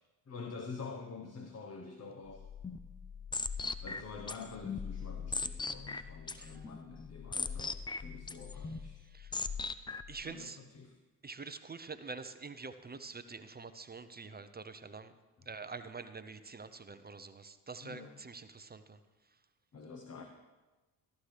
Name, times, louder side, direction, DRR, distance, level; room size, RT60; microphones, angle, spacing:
voice 1, 0.3-2.5 3.8-9.0 10.2-10.9 17.8-18.1 19.7-20.2, left 4 dB, 30° left, 5 dB, 1.1 m, -47 dB
sound 1, 2.3-10.2, left 4 dB, 10° left, 0.3 m, -40 dB
voice 2, 6.3-6.7 8.6-8.7 9.0-9.3 10.1-10.6 11.2-15.1 15.5-19.0 19.3-19.4, right 4 dB, 20° right, 10 dB, 0.7 m, -46 dB
14.5 x 13.0 x 3.3 m, 1.2 s
hypercardioid pair, 65°, 48 cm